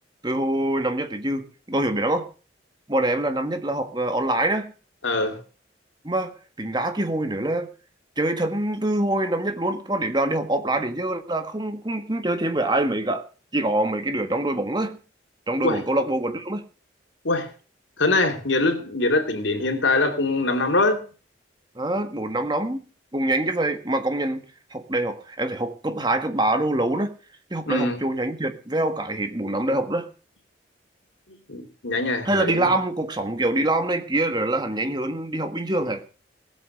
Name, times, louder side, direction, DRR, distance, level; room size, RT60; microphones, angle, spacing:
voice 1, 0.2-2.3 2.9-4.7 6.0-7.7 8.2-13.3 13.5-15.0 15.5-16.6 21.7-22.8 23.1-24.4 24.7-27.1 27.5-30.1 32.2-36.0, right 1 dB, 25° right, 1.7 m, -25 dB
voice 2, 5.0-5.4 15.6-15.8 17.2-17.5 18.0-21.0 27.7-28.0 31.5-32.7, left 2 dB, 80° left, 2.7 m, -23 dB
18.0 x 8.3 x 6.6 m
head